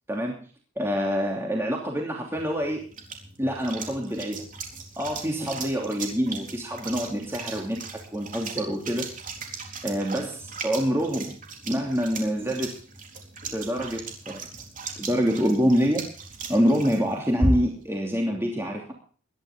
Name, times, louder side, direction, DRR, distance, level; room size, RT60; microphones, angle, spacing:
voice 1, 0.1-0.5 0.8-2.8 3.4-4.4 5.0-9.1 9.8-11.4 11.6-12.8 13.5-14.5 15.0-16.1 16.5-18.9, equal, 10° right, 0 dB, 3.0 m, -26 dB
sound 1, 2.4-17.9, right 2 dB, 40° right, 3.9 m, -36 dB
20.0 x 13.0 x 3.7 m, 0.41 s
head